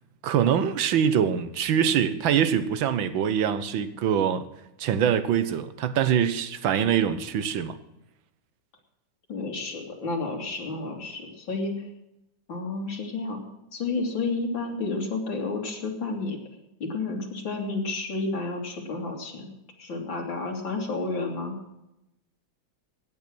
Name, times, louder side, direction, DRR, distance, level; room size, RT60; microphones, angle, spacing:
voice 1, 0.2-4.5 4.8-7.8, right 8 dB, 85° right, 1.8 m, -24 dB
voice 2, 9.3-11.9 12.5-13.4 13.7-16.4 16.8-19.4 19.8-21.6, left 3 dB, 85° left, 3.4 m, -31 dB
17.0 x 9.6 x 6.2 m
omnidirectional pair, 2.1 m